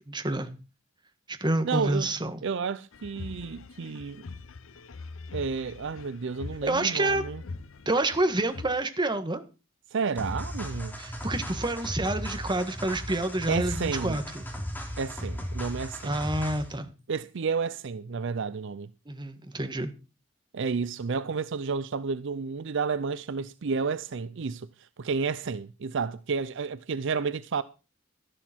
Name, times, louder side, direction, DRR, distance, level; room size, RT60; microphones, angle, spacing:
voice 1, 0.1-0.5 1.3-2.4 6.6-7.2 7.8-9.4 11.0-14.5 16.0-16.9 19.0-19.9, right 2 dB, 25° right, 1.5 m, -28 dB
voice 2, 1.6-2.1 2.4-4.2 5.3-7.4 9.9-10.9 13.5-14.2 15.0-16.2 17.1-18.9 20.5-27.6, right 5 dB, 65° right, 0.5 m, -31 dB
sound 1, 2.9-8.8, left 3 dB, 80° left, 0.7 m, -43 dB
sound 2, 10.2-16.8, equal, 10° left, 3.2 m, -36 dB
13.0 x 11.5 x 4.5 m
head